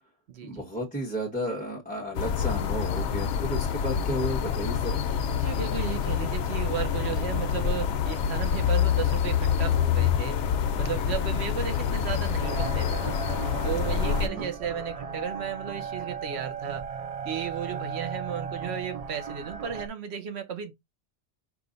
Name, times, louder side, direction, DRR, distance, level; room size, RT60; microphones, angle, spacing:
voice 1, 0.4-5.1 14.0-14.5, equal, 10° left, 1.0 m, -33 dB
sound 1, 2.1-14.3, left 8 dB, 85° left, 0.9 m, -27 dB
voice 2, 5.3-13.2 13.6-16.9 17.2-20.7, right 8 dB, 70° right, 1.0 m, -34 dB
sound 2, 12.4-19.9, right 6 dB, 55° right, 0.4 m, -36 dB
4.9 x 2.4 x 3.8 m
omnidirectional pair, 1.2 m